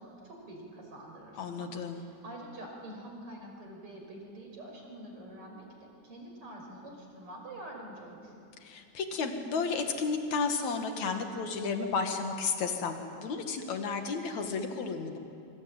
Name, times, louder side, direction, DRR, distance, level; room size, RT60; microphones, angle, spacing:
voice 1, 0.0-8.3, right 1 dB, 45° right, 1 dB, 6.3 m, -46 dB
voice 2, 1.4-2.0 8.6-15.2, left 4 dB, 65° left, 5 dB, 3.3 m, -32 dB
26.0 x 25.0 x 9.1 m, 2.7 s
omnidirectional pair, 3.5 m